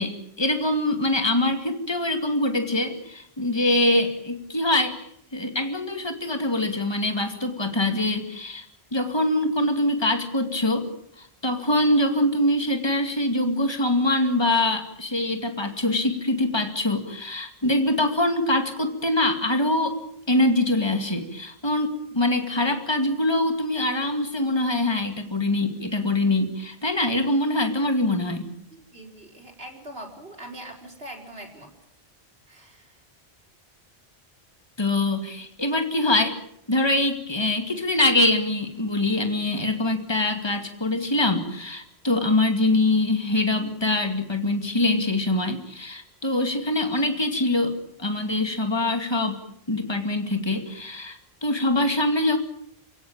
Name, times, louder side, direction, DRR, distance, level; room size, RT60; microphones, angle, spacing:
voice 1, 0.0-8.7 8.9-10.9 11.2-20.0 20.3-28.5 34.8-36.4 36.7-49.4 49.7-52.4, left 1 dB, 25° left, 7 dB, 2.4 m, -24 dB
voice 2, 28.7-31.7 32.5-33.0, right 1 dB, 70° right, 1 dB, 5.0 m, -42 dB
28.0 x 17.0 x 8.8 m, 0.72 s
omnidirectional pair, 1.0 m